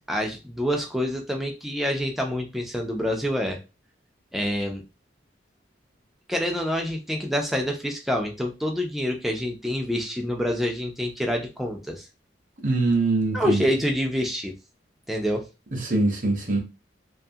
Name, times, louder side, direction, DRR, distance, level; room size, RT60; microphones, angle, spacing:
voice 1, 0.1-3.6 4.3-4.8 6.3-12.0 13.3-14.5 15.1-15.5, equal, ahead, 0.4 m, -27 dB
voice 2, 12.6-13.6 15.7-16.6, right 2 dB, 45° right, 0.7 m, -23 dB
2.6 x 2.4 x 2.7 m
head